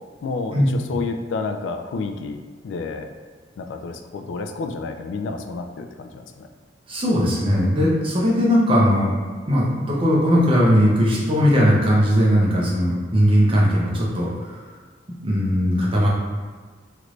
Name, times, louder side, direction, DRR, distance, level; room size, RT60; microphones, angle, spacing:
voice 1, 0.2-3.1 3.6-6.5, left 4 dB, 85° left, 6 dB, 0.3 m, -30 dB
voice 2, 6.9-9.1 9.5-14.6 15.2-16.1, equal, 30° right, -5 dB, 0.7 m, -18 dB
3.2 x 2.5 x 3.1 m, 1.5 s
head